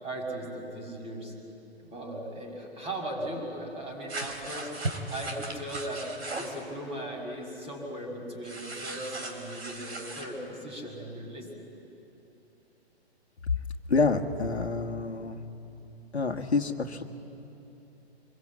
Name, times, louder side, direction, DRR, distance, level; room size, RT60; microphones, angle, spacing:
voice 1, 0.0-1.3 1.8-4.7 5.1-6.0 6.4-11.5, right 1 dB, 20° right, 1 dB, 5.9 m, -38 dB
sound 1, 4.1-6.6 8.4-10.3, right 2 dB, 75° right, 3.9 m, -37 dB
voice 2, 13.9-15.4 16.1-17.0, left 4 dB, 80° left, 5 dB, 1.6 m, -27 dB
25.5 x 22.0 x 8.5 m, 3.0 s
figure-of-eight pair, 120°, 32 cm